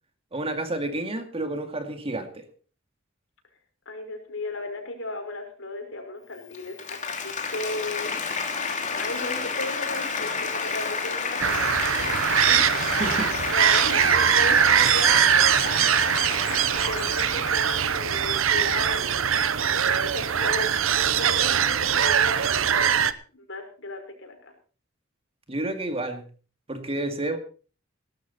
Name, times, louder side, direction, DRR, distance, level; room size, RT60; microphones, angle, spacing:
voice 1, 0.3-2.5 12.9-13.3 25.5-26.2 26.7-27.4, right 2 dB, 30° right, 7 dB, 2.2 m, -30 dB
voice 2, 3.9-8.1 8.7-12.6 13.5-20.7 21.1-23.1 23.3-24.5, left 2 dB, 70° left, 4 dB, 5.5 m, -36 dB
Applause, 6.4-18.0, left 5 dB, 40° left, 3.0 m, -31 dB
sound 1, 11.4-23.1, right 8 dB, 90° right, 0.9 m, -22 dB
18.0 x 13.0 x 4.2 m, 0.38 s
head